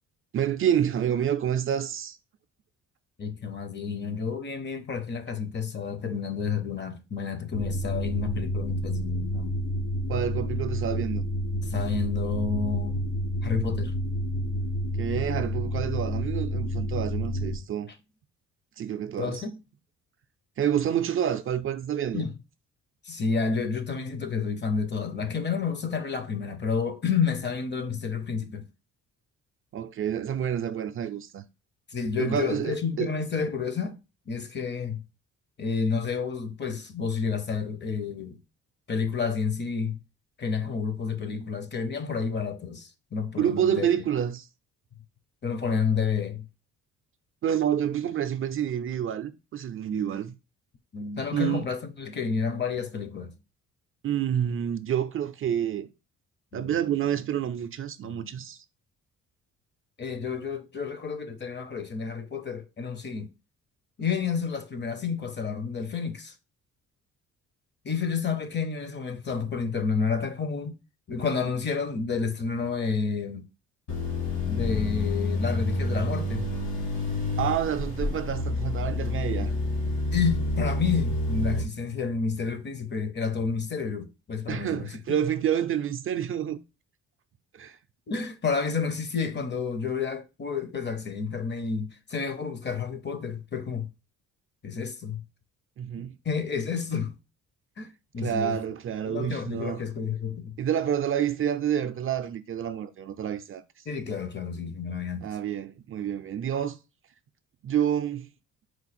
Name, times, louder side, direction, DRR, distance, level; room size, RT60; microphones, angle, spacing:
voice 1, 0.3-2.2 10.1-11.3 15.0-17.9 18.8-19.4 20.6-22.3 29.7-31.4 32.2-33.1 43.4-44.5 47.4-50.3 51.3-51.7 54.0-55.9 56.5-58.6 77.4-79.5 84.5-86.6 87.5-87.8 95.8-96.2 98.2-99.8 100.6-103.6 105.2-106.8 107.6-108.3, right 9 dB, 45° right, 0.4 m, -28 dB
voice 2, 3.2-9.6 11.6-13.1 13.4-13.9 19.2-19.6 22.1-22.3 23.0-28.6 31.9-34.0 34.3-35.0 35.6-38.4 38.9-40.0 40.4-43.9 45.4-46.4 49.9-50.2 50.9-53.4 56.5-56.8 58.0-58.4 60.0-63.3 64.0-66.3 67.8-70.8 71.1-73.4 74.4-76.5 80.1-85.2 88.1-93.9 94.6-95.2 96.0-97.2 97.8-98.6 99.1-100.6 103.9-105.2, left 5 dB, 35° left, 0.8 m, -30 dB
sound 1, 7.5-17.6, equal, 80° left, 1.2 m, -29 dB
sound 2, 73.9-81.6, left 2 dB, 65° left, 2.0 m, -28 dB
4.5 x 2.4 x 4.1 m
cardioid pair, 90°, 30 cm